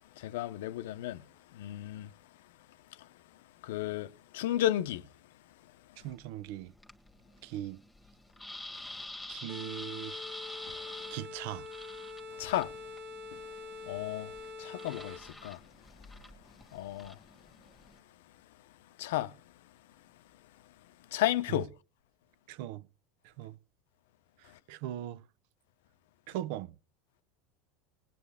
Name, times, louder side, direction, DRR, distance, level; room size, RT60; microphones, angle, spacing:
voice 1, 0.2-1.2 1.5-2.1 3.6-5.0 10.7-10.8 12.4-12.7 13.9-14.3 14.6-15.6 16.7-17.2 19.0-19.3 21.1-21.7, left 13 dB, 80° left, 0.7 m, -33 dB
sound 1, 6.0-18.0, left 2 dB, 5° left, 1.5 m, -48 dB
voice 2, 6.0-6.7 7.4-7.8 9.3-10.2 11.1-11.7 21.5-21.6 22.5-22.9 23.2-23.6 24.4-25.2 26.3-26.8, right 13 dB, 70° right, 0.6 m, -40 dB
sound 2, 9.5-15.4, left 3 dB, 50° right, 1.8 m, -45 dB
20.0 x 9.4 x 3.4 m
supercardioid pair, 120°, 0 cm